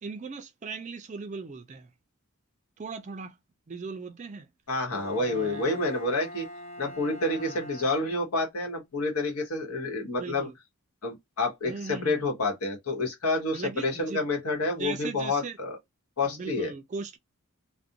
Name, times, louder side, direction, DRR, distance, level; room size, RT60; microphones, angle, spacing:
voice 1, 0.0-1.9 2.8-3.4 3.7-4.5 5.2-5.8 7.4-7.6 10.1-10.5 11.6-12.2 13.5-14.2 14.6-15.6 16.2-17.2, right 4 dB, 30° right, 0.3 m, -39 dB
voice 2, 4.7-6.5 6.8-10.5 11.0-15.8 16.2-16.7, left 2 dB, 80° left, 1.0 m, -29 dB
Bowed string instrument, 4.9-8.6, equal, 30° left, 0.5 m, -43 dB
2.4 x 2.1 x 2.6 m
head